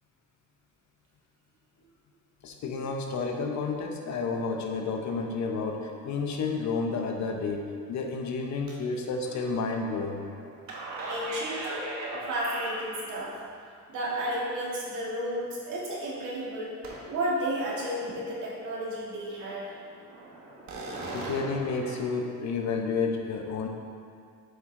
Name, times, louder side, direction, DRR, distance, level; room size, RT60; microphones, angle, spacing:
voice 1, 2.4-10.2 21.1-23.7, left 4 dB, 65° left, 2 dB, 0.9 m, -31 dB
sound 1, 9.2-13.2 16.8-17.3 17.6-18.3 18.6-18.7 19.1-22.0, right 2 dB, 65° right, 1.4 m, -39 dB
voice 2, 11.1-13.4 13.9-16.7 17.1-19.7, right 1 dB, 85° right, -5 dB, 1.8 m, -32 dB
7.8 x 4.7 x 3.8 m, 2.2 s
cardioid pair, 90°, 30 cm